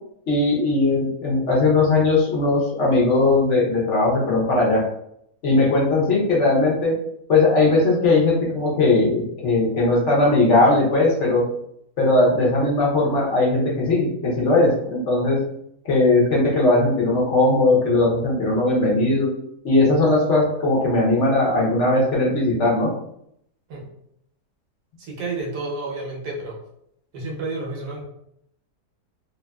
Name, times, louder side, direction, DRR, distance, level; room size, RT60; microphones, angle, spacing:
voice 1, 0.3-4.8 5.4-6.9 7.3-11.4 12.0-15.4 15.8-19.3 19.6-22.9, left 2 dB, 55° left, -4 dB, 1.0 m, -19 dB
voice 2, 25.0-26.6 27.1-28.0, right 3 dB, 85° right, -2 dB, 1.4 m, -30 dB
3.2 x 2.6 x 2.2 m, 0.73 s
omnidirectional pair, 1.7 m